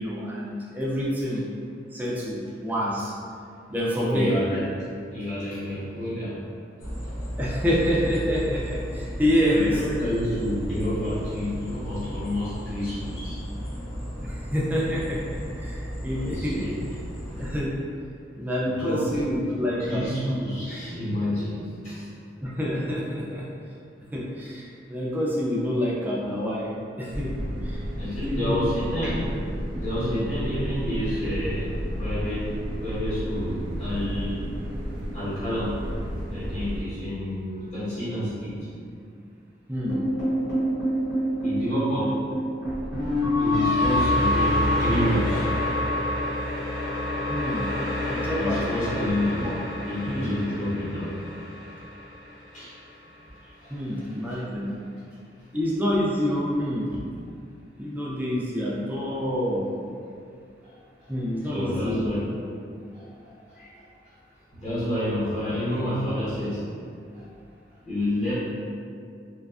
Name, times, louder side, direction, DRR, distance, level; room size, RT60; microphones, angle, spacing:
voice 1, 0.0-1.5 1.9-3.1 3.7-4.4 7.4-10.1 14.2-16.6 17.4-17.7 18.4-20.1 22.4-23.5 24.1-26.7 27.0-27.3 27.6-27.8 28.2-28.6 30.0-30.3 39.7-40.0 47.3-47.7 48.1-49.0 49.4-49.5 50.1-50.3 53.7-54.7 55.5-57.0 57.8-59.6 61.1-62.1, equal, 10° right, -6 dB, 0.3 m, -27 dB
voice 2, 4.0-4.7 5.1-6.4 9.5-13.4 16.1-16.7 18.6-19.1 19.8-22.0 28.0-29.2 29.8-31.7 32.0-32.5 32.8-34.4 35.1-35.8 36.3-38.5 41.4-42.2 43.4-45.5 48.3-49.5 49.8-51.2 52.5-52.7 53.6-54.1 60.6-60.7 61.4-62.3 62.9-63.8 64.6-66.6 67.1-67.2 67.8-68.3, left 1 dB, 35° left, -13 dB, 0.9 m, -29 dB
sound 1, 6.8-17.6, equal, 85° left, 0.6 m, -34 dB
sound 2, 27.1-36.8, equal, 80° right, 0.5 m, -32 dB
sound 3, 39.9-52.1, left 1 dB, 60° left, 1.0 m, -26 dB
2.4 x 2.3 x 2.3 m, 2.4 s
head